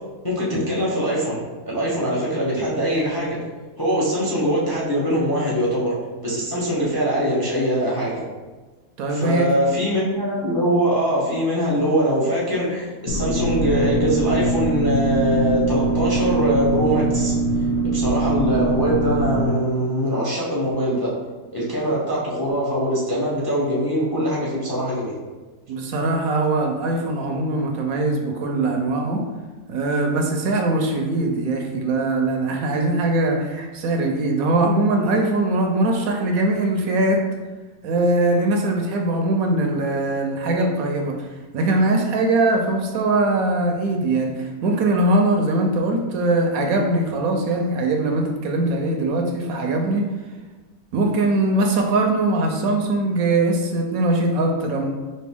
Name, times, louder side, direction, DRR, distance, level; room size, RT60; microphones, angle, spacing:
voice 1, 0.2-1.4 1.7-3.4 3.8-6.0 6.2-8.2 9.1-17.3 17.9-21.1 21.5-25.2, equal, 20° left, -6 dB, 0.6 m, -22 dB
voice 2, 9.0-9.5 25.7-29.2 29.7-37.2 37.8-41.3 41.5-50.0 50.9-54.9, right 2 dB, 70° right, 2 dB, 0.9 m, -21 dB
sound 1, 13.1-19.5, right 2 dB, 75° left, 1.0 m, -22 dB
4.3 x 2.6 x 3.5 m, 1.3 s
omnidirectional pair, 1.6 m